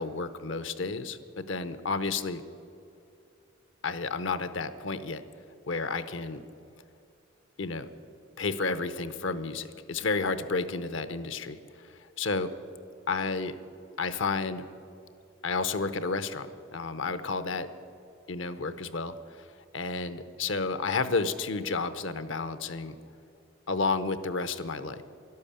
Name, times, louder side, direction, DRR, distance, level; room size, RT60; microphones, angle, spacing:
voice 1, 0.0-2.4 3.8-5.2 5.7-6.4 7.6-7.9 8.4-11.6 12.2-12.5 13.1-13.6 14.0-14.6 15.4-17.7 18.3-19.5 19.7-22.9 23.7-25.0, left 4 dB, 65° left, 12 dB, 0.8 m, -31 dB
12.5 x 12.0 x 8.7 m, 2.7 s
head